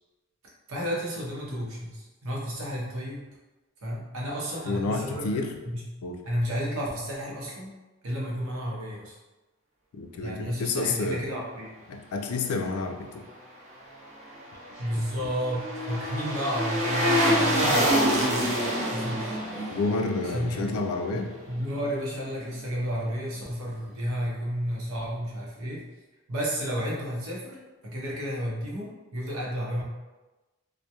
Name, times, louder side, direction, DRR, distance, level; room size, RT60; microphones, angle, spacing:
voice 1, 0.7-3.3 3.8-5.8 6.2-7.7 8.0-9.2 10.2-11.7 14.8-19.8 20.2-20.6 21.1-25.8 26.3-29.8, equal, 80° right, -4 dB, 0.7 m, -32 dB
voice 2, 4.7-5.5 6.0-6.2 9.9-11.3 11.9-13.3 19.7-21.3, left 3 dB, 90° left, 4 dB, 0.3 m, -29 dB
sound 1, 14.3-21.5 21.8-21.9, equal, 35° right, 0.5 m, -27 dB
2.2 x 2.1 x 2.8 m, 1.1 s
head